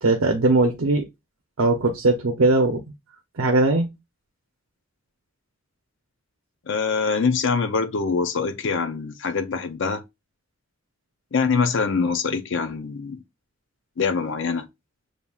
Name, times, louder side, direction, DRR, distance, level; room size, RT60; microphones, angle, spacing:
voice 1, 0.0-1.0 1.6-2.8 3.4-3.9, right 2 dB, 80° right, 0.7 m, -19 dB
voice 2, 6.7-10.0 11.3-13.2 14.0-14.7, left 5 dB, 60° left, 0.5 m, -24 dB
7.0 x 2.7 x 2.3 m
head